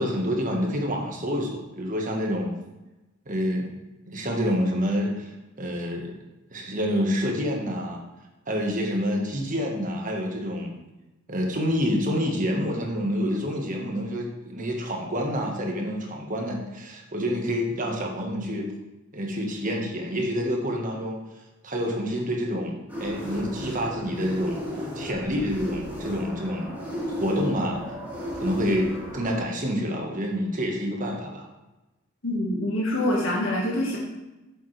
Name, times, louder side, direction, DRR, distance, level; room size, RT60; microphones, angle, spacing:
voice 1, 0.0-2.5 3.3-3.7 4.1-6.1 6.5-8.0 8.5-10.8 11.3-18.7 19.1-21.2 21.6-24.6 24.9-26.8 27.2-27.8 28.4-31.5, equal, 40° right, 1 dB, 1.4 m, -28 dB
sound 1, 22.9-29.4, equal, 10° right, 2.1 m, -34 dB
voice 2, 32.2-34.0, left 1 dB, 85° left, -4 dB, 1.7 m, -25 dB
8.2 x 7.1 x 3.3 m, 1.0 s
head